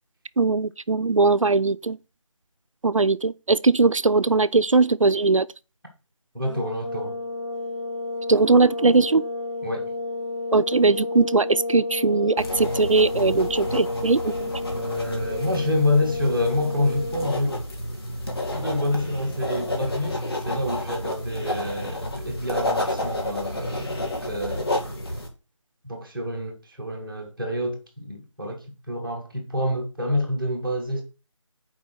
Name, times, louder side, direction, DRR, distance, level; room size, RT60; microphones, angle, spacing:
voice 1, 0.4-2.0 2.8-5.5 8.3-9.2 10.5-14.5, right 3 dB, 75° right, 0.5 m, -20 dB
voice 2, 6.3-7.2 9.6-9.9 14.8-17.6 18.5-20.2 20.4-24.7 25.8-31.0, left 1 dB, ahead, 0.9 m, -27 dB
sound 1, 6.4-17.5, left 2 dB, 65° left, 2.2 m, -31 dB
sound 2, 12.4-25.3, left 1 dB, 50° left, 2.4 m, -30 dB
7.2 x 4.9 x 6.2 m
figure-of-eight pair, 165°, 17 cm